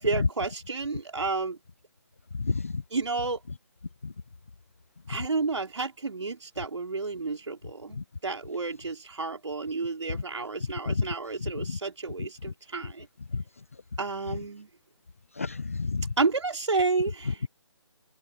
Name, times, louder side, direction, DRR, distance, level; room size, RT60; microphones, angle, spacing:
voice 1, 0.0-1.6 2.9-3.4 5.1-13.1 14.0-14.7 16.2-17.4, right 4 dB, 70° right, 4.8 m, -31 dB
voice 2, 2.4-2.7 4.0-4.1 10.9-11.0 11.7-11.8 13.3-13.4 15.4-16.1, left 4 dB, 30° left, 0.4 m, -29 dB
open air
hypercardioid pair, 170°, 16 cm